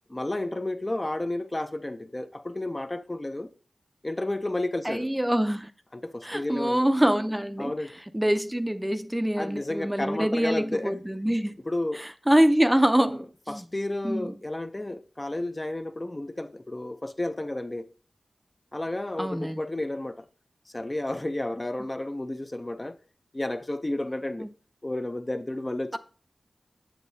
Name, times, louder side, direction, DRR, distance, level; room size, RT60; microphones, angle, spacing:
voice 1, 0.1-3.5 4.0-5.1 5.9-6.9 7.6-7.9 9.4-11.0 11.7-12.0 13.0-17.9 18.7-20.3 20.7-23.0 23.3-24.5 24.8-26.0, left 1 dB, 30° left, 0.6 m, -32 dB
voice 2, 4.8-5.7 6.2-7.7 8.1-11.6 11.9-13.7 14.0-14.3 19.2-19.6 24.4-24.5, equal, 10° right, 0.5 m, -25 dB
7.5 x 7.2 x 2.7 m
cardioid pair, 40°, 0 cm